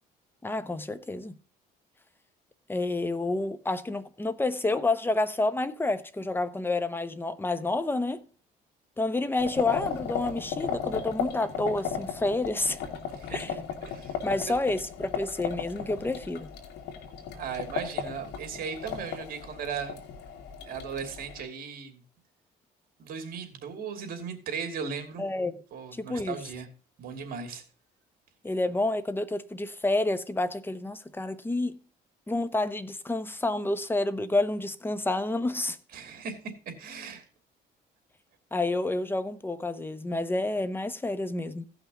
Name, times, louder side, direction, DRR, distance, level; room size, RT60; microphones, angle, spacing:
voice 1, 0.4-1.3 2.7-8.2 9.0-12.8 13.3-13.6 14.2-16.5 25.2-25.6 25.9-26.4 28.4-31.8 32.3-35.8 38.5-41.6, left 2 dB, 10° left, 0.9 m, -29 dB
sound 1, 9.4-21.4, left 7 dB, 85° left, 2.1 m, -36 dB
voice 2, 13.2-14.2 17.3-20.0 20.7-22.0 23.0-25.2 25.7-26.7 27.0-27.6 35.9-36.4 36.7-37.3, right 6 dB, 60° right, 2.8 m, -37 dB
16.0 x 5.8 x 3.8 m
cardioid pair, 110°, 17 cm